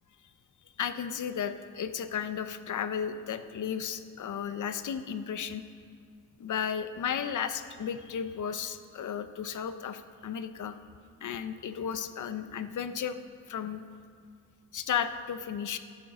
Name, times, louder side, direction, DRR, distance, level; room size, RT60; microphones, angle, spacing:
voice 1, 0.8-5.6 6.4-10.8 11.2-13.2 13.5-13.8 14.7-15.8, left 8 dB, 70° left, 10 dB, 0.7 m, -34 dB
13.0 x 7.7 x 6.1 m, 2.3 s
wide cardioid pair, 140°, 32 cm